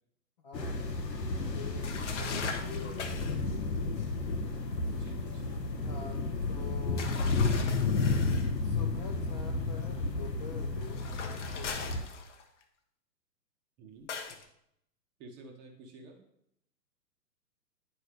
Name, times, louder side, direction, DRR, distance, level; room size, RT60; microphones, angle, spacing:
voice 1, 0.4-0.8 1.5-3.1 4.9-5.0 5.8-6.2 6.5-7.1 8.6-12.1, left 5 dB, 25° left, 3 dB, 0.6 m, -46 dB
sound 1, 0.5-12.0, left 3 dB, 80° left, 1.0 m, -32 dB
sound 2, 1.8-3.4 7.0-8.5 10.9-12.6 14.1-14.4, left 5 dB, 45° left, 1.0 m, -40 dB
voice 2, 4.9-5.6 13.8-14.1 15.2-16.2, right 2 dB, 20° right, 2 dB, 0.9 m, -51 dB
10.0 x 4.6 x 3.3 m, 0.77 s
figure-of-eight pair, 125°, 49 cm